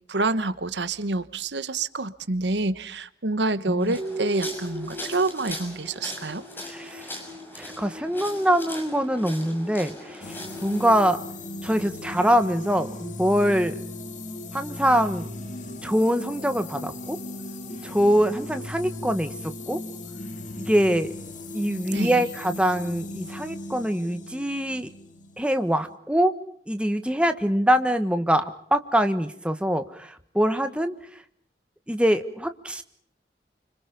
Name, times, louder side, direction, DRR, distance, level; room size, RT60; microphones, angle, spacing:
voice 1, 0.1-6.4 21.9-22.2, right 2 dB, 85° right, 14 dB, 1.2 m, -27 dB
sound 1, 3.8-10.9, left 1 dB, 10° left, 6.0 m, -40 dB
sound 2, 4.0-18.2, right 1 dB, 45° right, 5.4 m, -42 dB
voice 2, 6.6-7.1 7.6-11.2 11.6-13.8 14.5-15.3 15.8-17.2 17.8-19.3 19.7-19.8 20.6-21.1 21.5-24.9 25.4-26.3 26.7-30.9 31.9-32.8, equal, 5° right, 8 dB, 1.3 m, -24 dB
sound 3, 10.2-26.0, left 2 dB, 45° left, 2.3 m, -37 dB
29.5 x 26.0 x 5.3 m, 0.62 s
head